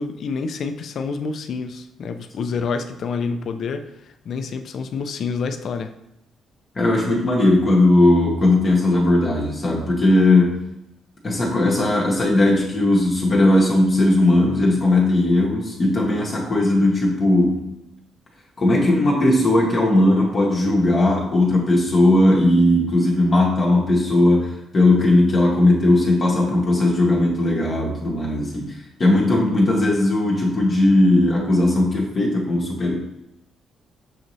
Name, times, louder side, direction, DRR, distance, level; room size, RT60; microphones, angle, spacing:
voice 1, 0.0-5.9, left 5 dB, 60° left, 8 dB, 0.3 m, -28 dB
voice 2, 6.7-10.6 11.2-17.7 18.6-28.7 29.0-32.9, left 1 dB, 40° left, -2 dB, 0.8 m, -18 dB
6.3 x 2.6 x 3.0 m, 0.85 s
cardioid pair, 90°, 0 cm